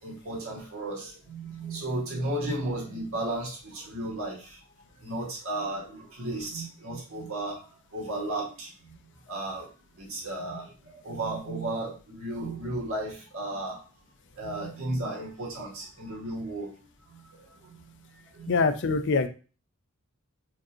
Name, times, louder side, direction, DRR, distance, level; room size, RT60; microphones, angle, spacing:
voice 1, 0.0-4.6 5.0-8.9 9.3-9.7 9.9-13.8 14.3-16.7 17.1-18.0 18.2-18.5, right 1 dB, 70° right, -3 dB, 1.9 m, -34 dB
voice 2, 18.5-19.3, left 4 dB, 55° left, 10 dB, 0.5 m, -24 dB
4.4 x 3.7 x 2.9 m, 0.34 s
head